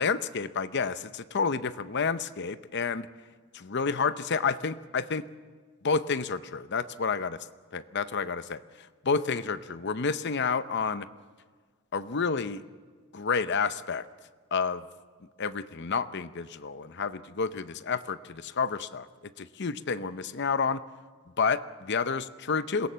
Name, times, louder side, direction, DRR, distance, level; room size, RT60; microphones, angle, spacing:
voice 1, 0.0-3.1 3.5-5.2 5.8-7.4 7.7-8.6 9.0-11.1 11.9-12.6 13.1-14.0 14.5-14.8 15.4-19.1 19.4-20.8 21.4-22.9, left 5 dB, 55° left, 13 dB, 0.7 m, -29 dB
26.5 x 17.0 x 7.5 m, 1.5 s
head